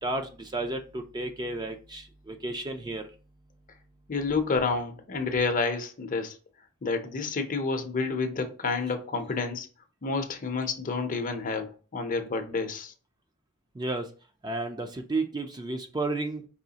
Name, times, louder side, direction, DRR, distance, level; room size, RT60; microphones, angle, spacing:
voice 1, 0.0-3.1 13.7-14.1 14.4-16.5, right 2 dB, 20° right, 0.4 m, -32 dB
voice 2, 4.1-6.4 6.8-9.7 10.0-12.9, left 4 dB, 35° left, 0.6 m, -29 dB
4.9 x 3.1 x 2.8 m
head